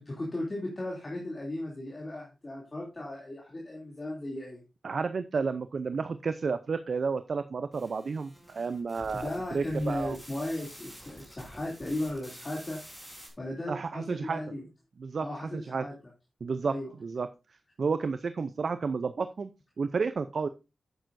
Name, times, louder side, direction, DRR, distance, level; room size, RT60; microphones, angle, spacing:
voice 1, 0.0-4.6 9.1-12.8 13.4-14.7 15.2-15.9 16.7-16.9, left 1 dB, 30° left, -3 dB, 2.8 m, -36 dB
voice 2, 4.8-10.2 13.7-14.4 15.0-15.9 16.4-17.3 17.8-19.5 19.8-20.5, right 5 dB, 60° right, 11 dB, 0.5 m, -31 dB
sound 1, 7.7-13.3, equal, 5° right, 3.9 m, -49 dB
10.5 x 9.2 x 2.6 m, 0.27 s
wide cardioid pair, 100°, 0 cm